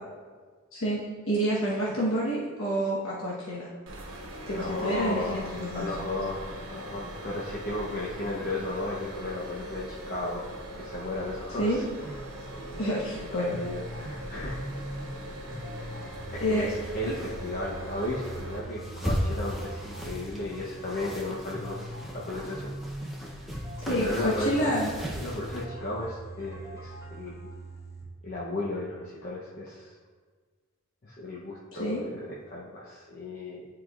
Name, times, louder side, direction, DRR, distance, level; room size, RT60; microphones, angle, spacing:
voice 1, 0.7-1.0 1.3-3.7 4.5-5.9 11.6-11.8 12.8-13.6 16.4-16.7 17.0-17.1 23.8-24.9 31.8-32.0, equal, 75° left, -7 dB, 1.1 m, -28 dB
sound 1, 3.9-18.6, right 1 dB, 65° right, 1.1 m, -41 dB
voice 2, 4.5-5.5 5.7-11.8 12.4-12.9 13.3-14.6 16.3-21.8 22.1-22.7 23.3-23.5 23.9-24.8 25.1-27.5 28.2-29.9 31.0-33.7, left 1 dB, 45° left, -5 dB, 0.7 m, -34 dB
sound 2, 12.0-28.0, right 1 dB, 15° right, 1.3 m, -42 dB
sound 3, 14.3-25.7, equal, ahead, 0.6 m, -38 dB
9.9 x 4.7 x 2.4 m, 1.6 s
head